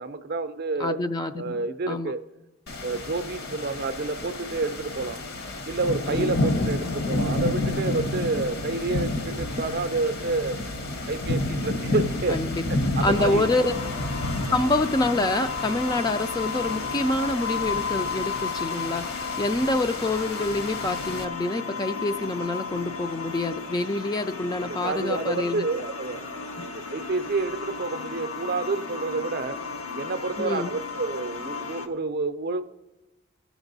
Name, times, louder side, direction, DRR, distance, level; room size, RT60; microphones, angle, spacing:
voice 1, 0.0-1.0 1.4-2.2 2.8-5.2 5.6-10.6 11.1-12.4 12.7-13.5 24.6-29.6 29.9-32.6, right 3 dB, 45° right, 10 dB, 0.5 m, -29 dB
voice 2, 0.8-1.6 1.9-2.1 6.1-6.4 12.3-12.6 13.0-13.7 14.5-25.6 30.4-30.7, left 2 dB, 20° left, 8 dB, 0.3 m, -26 dB
sound 1, 2.7-21.2, left 2 dB, 50° left, 0.9 m, -30 dB
sound 2, 13.1-31.9, left 5 dB, 85° left, 0.9 m, -34 dB
16.5 x 6.1 x 4.0 m, 1.1 s
head